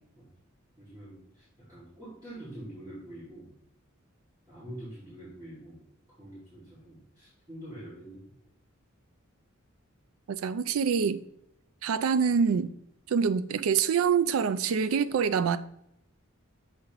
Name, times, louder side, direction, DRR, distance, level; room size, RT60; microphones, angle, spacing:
voice 1, 0.8-3.5 4.5-5.8 6.2-8.3, right 1 dB, 20° right, 2.1 m, -45 dB
voice 2, 10.3-11.2 11.8-12.7 13.1-15.6, right 6 dB, 75° right, 0.4 m, -25 dB
6.8 x 5.0 x 3.0 m
head